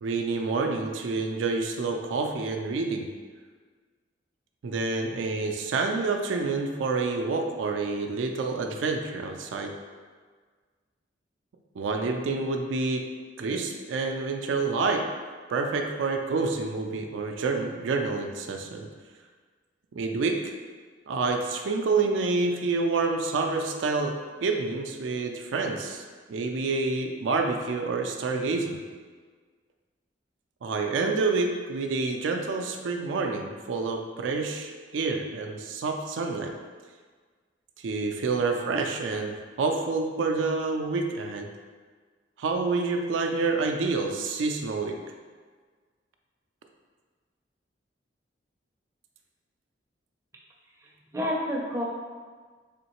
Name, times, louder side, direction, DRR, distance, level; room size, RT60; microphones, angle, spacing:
voice 1, 0.0-3.1 4.6-9.7 11.8-13.0 13.4-15.0 15.5-18.9 19.9-20.5 21.1-28.8 30.6-36.5 37.8-41.5 42.4-45.0, right 3 dB, 90° right, 3 dB, 0.4 m, -28 dB
voice 2, 50.8-51.8, equal, 15° right, -3 dB, 0.4 m, -30 dB
3.6 x 3.1 x 2.9 m, 1.5 s
head